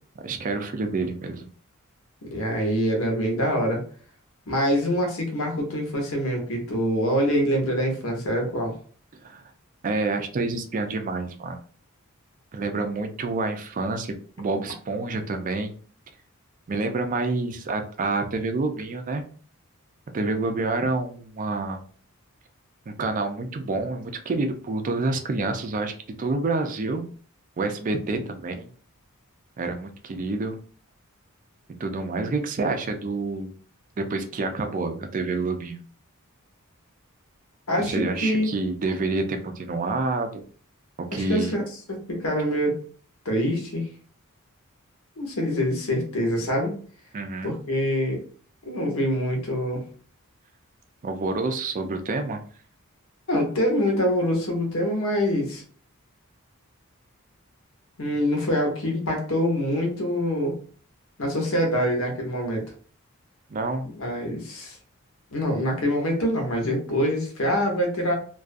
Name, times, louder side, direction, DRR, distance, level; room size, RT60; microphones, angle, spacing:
voice 1, 0.2-1.5 9.2-9.4 9.8-11.6 12.5-15.8 16.7-19.2 20.1-21.8 22.9-27.0 27.6-28.7 29.6-30.6 31.8-33.5 34.0-35.8 37.8-40.4 41.1-41.5 47.1-47.5 51.0-52.4 63.5-63.9, right 3 dB, 35° right, 6 dB, 0.4 m, -28 dB
voice 2, 2.3-3.8 4.5-8.8 37.7-38.5 41.1-41.6 41.9-42.8 43.2-43.9 45.2-46.7 47.4-48.2 48.6-49.8 53.3-55.6 58.0-60.6 61.2-62.6 64.0-64.8 65.3-68.1, equal, 75° left, 2 dB, 0.8 m, -25 dB
2.3 x 2.3 x 2.5 m, 0.44 s
head